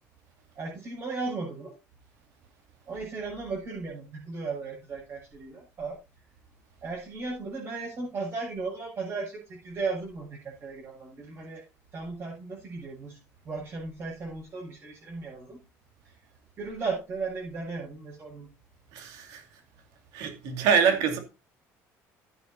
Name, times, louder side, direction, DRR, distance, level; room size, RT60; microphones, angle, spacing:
voice 1, 0.5-1.7 2.9-6.0 6.8-11.6 11.9-13.2 13.4-15.6 16.6-18.5, right 4 dB, 40° right, 6.1 m, -36 dB
voice 2, 18.9-19.4 20.1-21.2, right 6 dB, 90° right, 2.6 m, -25 dB
14.0 x 9.1 x 2.7 m
cardioid pair, 140°, 6 cm